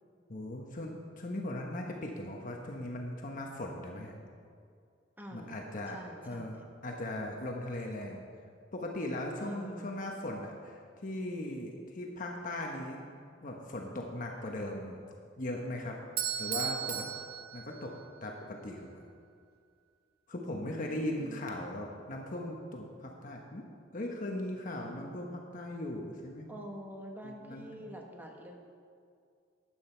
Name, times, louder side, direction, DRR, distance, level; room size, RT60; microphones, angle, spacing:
voice 1, 0.3-4.2 5.3-6.0 6.2-8.2 8.7-13.0 13.4-15.0 15.4-16.0 16.4-17.0 17.5-17.9 18.2-19.0 20.3-23.7 23.9-26.5 27.2-27.7, left 1 dB, 45° left, 1 dB, 1.0 m, -38 dB
voice 2, 5.2-5.5 5.9-6.6 9.4-9.9 20.4-21.6 26.5-28.6, equal, 10° right, 1 dB, 1.3 m, -47 dB
Bell / Doorbell, 16.2-18.3, right 9 dB, 55° right, 0.6 m, -36 dB
12.5 x 9.0 x 4.4 m, 2.2 s
head